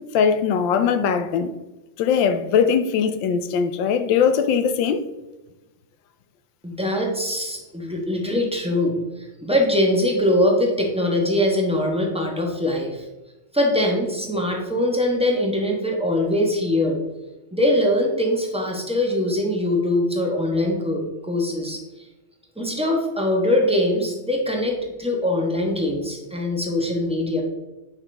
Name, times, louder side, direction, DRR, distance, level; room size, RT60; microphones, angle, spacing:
voice 1, 0.1-1.5 2.0-5.0, left 7 dB, 80° left, 1.3 m, -20 dB
voice 2, 6.6-8.9 9.4-13.0 13.5-17.0 17.5-21.8 22.6-27.4, left 1 dB, 5° right, 0.8 m, -22 dB
9.0 x 5.8 x 3.4 m
omnidirectional pair, 2.1 m